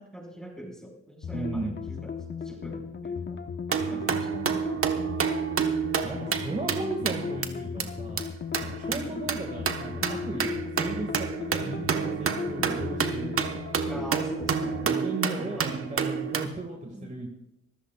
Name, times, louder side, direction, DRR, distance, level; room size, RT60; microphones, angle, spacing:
voice 1, 0.0-3.4 3.9-5.3 6.0-6.8 8.9-9.2 13.8-14.9 15.4-16.2 16.9-17.2, equal, ahead, 0 dB, 5.5 m, -44 dB
sound 1, 1.2-14.9, left 5 dB, 35° left, 1.2 m, -36 dB
voice 2, 1.3-1.8 6.0-8.3 8.6-13.3 13.9-14.2 14.8-17.3, right 2 dB, 25° right, 2 dB, 2.1 m, -36 dB
sound 2, 3.7-7.5 7.8-7.9 8.2-8.3 8.5-16.5, right 7 dB, 45° right, 1.4 m, -29 dB
25.0 x 14.5 x 2.5 m, 0.82 s
cardioid pair, 90°, 30 cm